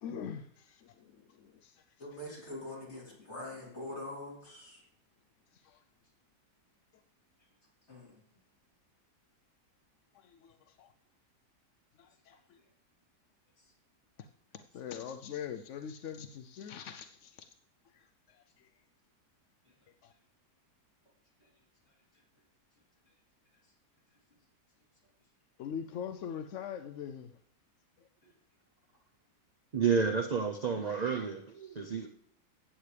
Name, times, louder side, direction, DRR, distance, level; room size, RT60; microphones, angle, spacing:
voice 1, 0.0-1.8 5.6-5.8 10.1-10.9 12.0-12.6 14.5-17.5 17.9-18.7 20.0-20.1 25.6-27.3, left 8 dB, 65° left, 8 dB, 0.7 m, -43 dB
voice 2, 2.0-4.8 7.9-8.2, left 1 dB, 40° left, -5 dB, 3.8 m, -44 dB
voice 3, 29.7-32.1, right 6 dB, 55° right, 5 dB, 0.4 m, -30 dB
15.0 x 8.3 x 3.3 m, 0.70 s
omnidirectional pair, 1.8 m